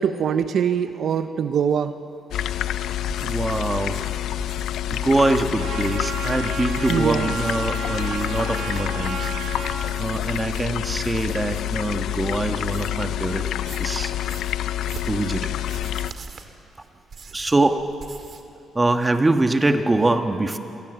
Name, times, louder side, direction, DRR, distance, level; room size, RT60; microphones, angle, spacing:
voice 1, 0.0-1.9 6.9-7.3, right 8 dB, 65° right, 10 dB, 0.8 m, -23 dB
sound 1, 2.3-16.1, left 12 dB, 75° left, 0.5 m, -27 dB
sound 2, 3.0-13.1 13.4-18.5 18.8-19.3, right 4 dB, 45° right, 2.2 m, -43 dB
voice 2, 3.2-4.0 4.9-9.3 10.0-13.4 13.8-14.1 15.1-15.5 17.3-17.8 18.7-20.6, right 2 dB, 20° right, 6 dB, 1.6 m, -23 dB
Trumpet, 5.6-9.8, right 3 dB, 90° right, 7.3 m, -33 dB
28.0 x 18.0 x 8.0 m, 2.7 s
cardioid pair, 90°, 0 cm